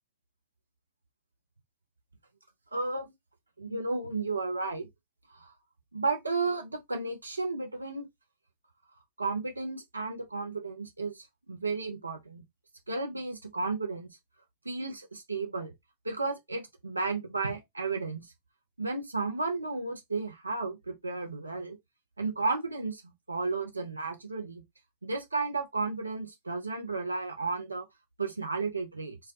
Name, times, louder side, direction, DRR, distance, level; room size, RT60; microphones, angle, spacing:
voice 1, 2.7-3.1 3.6-4.9 5.3-5.5 5.9-8.0 9.2-12.4 12.9-14.1 14.6-15.7 16.0-18.3 18.8-21.8 22.2-24.6 25.0-27.9 28.2-29.2, right 3 dB, 80° right, 0.5 m, -33 dB
2.3 x 2.2 x 2.4 m
figure-of-eight pair, 90°, 0 cm